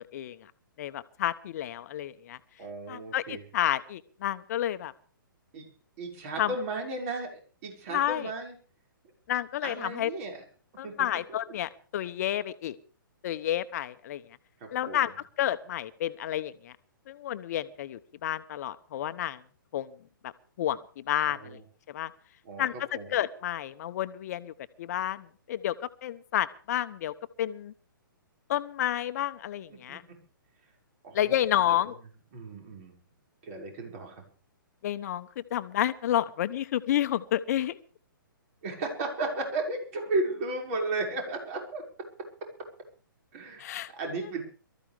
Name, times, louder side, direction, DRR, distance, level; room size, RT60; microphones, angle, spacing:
voice 1, 0.8-2.4 2.9-4.9 6.4-6.5 7.9-8.3 9.3-10.1 10.8-12.7 13.2-14.2 14.7-15.1 15.4-16.7 17.1-19.4 19.7-19.9 20.2-20.3 20.6-21.6 21.9-22.1 22.6-22.7 23.1-24.5 24.8-25.7 26.0-27.1 27.4-27.7 28.5-30.0 31.1-31.9 34.8-37.8 43.6-43.9, left 12 dB, 45° left, 12 dB, 1.1 m, -30 dB
voice 2, 2.6-3.5 5.5-5.7 6.0-8.6 9.6-10.4 10.8-11.1 14.6-15.1 21.3-21.6 22.4-23.1 29.7-30.2 31.0-31.4 31.7-31.8 32.3-32.9 33.4-34.2 38.6-41.8 43.3-43.6 43.9-44.4, right 2 dB, 40° right, 1 dB, 5.9 m, -34 dB
23.0 x 14.0 x 3.6 m, 0.38 s
figure-of-eight pair, 125°, 12 cm